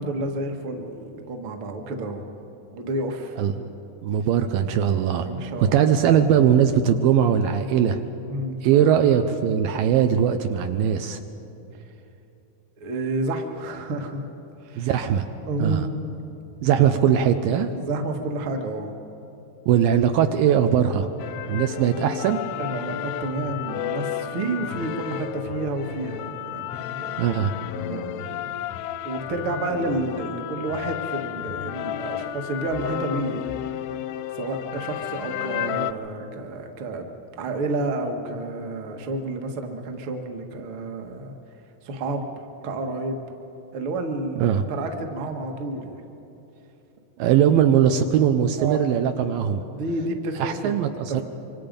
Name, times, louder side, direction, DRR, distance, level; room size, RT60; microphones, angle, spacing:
voice 1, 0.0-2.3 2.7-3.4 5.2-5.8 8.3-8.8 12.8-14.3 14.6-14.9 15.5-16.0 17.7-18.9 22.6-27.3 27.7-28.6 29.0-33.5 34.3-37.1 37.3-41.3 41.8-43.2 43.7-45.9 48.6-48.8 49.7-50.6 51.1-51.2, right 2 dB, 50° right, 4 dB, 1.7 m, -30 dB
voice 2, 3.4-3.7 4.0-5.3 5.6-8.0 8.6-11.2 14.8-15.3 15.6-15.8 16.6-17.7 19.7-21.1 21.5-22.4 27.2-27.5 44.4-44.6 47.2-49.6 50.4-51.2, right 9 dB, 80° right, 7 dB, 2.3 m, -20 dB
sound 1, 21.2-35.9, left 11 dB, 85° left, 2.6 m, -32 dB
26.5 x 24.5 x 5.3 m, 3.0 s
omnidirectional pair, 4.3 m